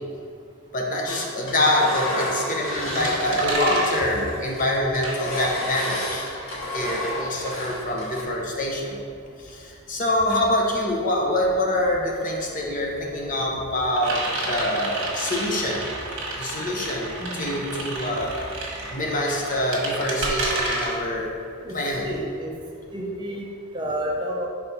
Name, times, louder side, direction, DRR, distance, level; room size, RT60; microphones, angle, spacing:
voice 1, 0.7-6.2 6.7-9.0 9.4-15.8 16.4-18.3 18.9-21.3 21.7-22.1, left 1 dB, 40° left, -1 dB, 0.7 m, -25 dB
Engine, 1.1-3.6 3.9-8.2, left 1 dB, 65° left, 1.2 m, -31 dB
sound 1, 2.9-5.7 6.1-22.5, right 2 dB, 55° right, 1.3 m, -31 dB
voice 2, 17.2-17.6 21.6-21.7 22.0-22.5 22.9-23.5 23.7-24.5, equal, 20° right, -2 dB, 0.6 m, -30 dB
4.4 x 4.2 x 5.3 m, 2.3 s
head